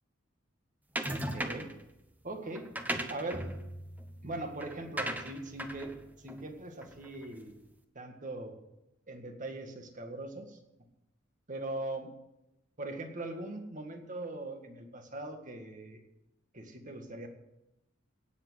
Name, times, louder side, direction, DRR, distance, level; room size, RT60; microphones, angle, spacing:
sound 1, 1.0-1.8 2.5-7.2, right 1 dB, 10° right, 1.0 m, -38 dB
voice 1, 1.1-1.7 2.2-2.7 3.1-3.5 4.2-7.5 8.0-8.6 9.1-10.6 11.5-12.1 12.8-16.0 16.5-17.3, right 2 dB, 40° right, 5 dB, 1.9 m, -40 dB
17.5 x 7.4 x 6.4 m, 0.87 s
head